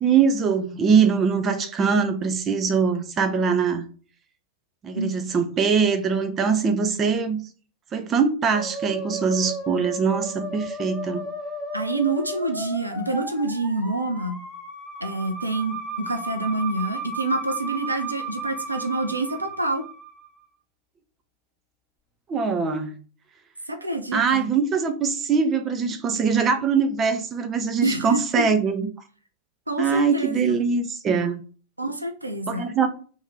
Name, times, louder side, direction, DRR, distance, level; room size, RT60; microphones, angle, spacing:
voice 1, 0.0-3.9 4.8-7.4 7.9-11.3 22.3-23.0 24.1-28.9 29.8-31.4 32.5-32.9, right 5 dB, 25° right, 8 dB, 0.6 m, -22 dB
Musical instrument, 8.5-20.3, right 2 dB, 5° right, 0.9 m, -34 dB
voice 2, 11.7-14.4 15.0-19.9 23.7-24.5 27.8-28.4 29.7-30.6 31.8-32.7, right 2 dB, 85° right, 7 dB, 0.4 m, -27 dB
3.0 x 2.7 x 3.7 m, 0.39 s
figure-of-eight pair, 90°, 0 cm